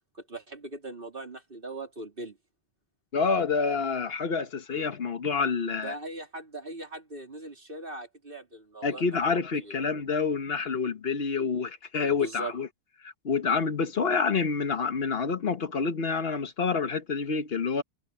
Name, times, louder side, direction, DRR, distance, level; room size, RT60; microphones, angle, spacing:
voice 1, 0.1-2.4 5.7-9.8 11.4-11.6 12.0-12.5, right 2 dB, 60° right, 3.7 m, -40 dB
voice 2, 3.1-5.9 8.8-12.7 13.2-17.8, left 5 dB, 70° left, 1.4 m, -28 dB
omnidirectional pair, 1.1 m